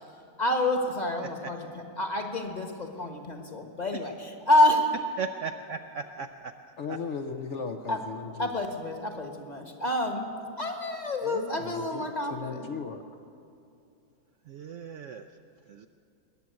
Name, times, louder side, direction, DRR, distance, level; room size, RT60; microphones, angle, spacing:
voice 1, 0.4-4.9 7.9-8.0 8.4-10.3 10.6-12.7, left 1 dB, 30° left, 4 dB, 1.4 m, -28 dB
voice 2, 5.2-6.5 6.9-7.0 11.3-11.6 14.5-15.2 15.7-15.9, right 5 dB, 65° right, 7 dB, 0.7 m, -37 dB
voice 3, 6.8-8.5 11.6-13.0, left 5 dB, 60° left, 5 dB, 0.9 m, -36 dB
20.5 x 7.5 x 9.3 m, 2.5 s
omnidirectional pair, 1.7 m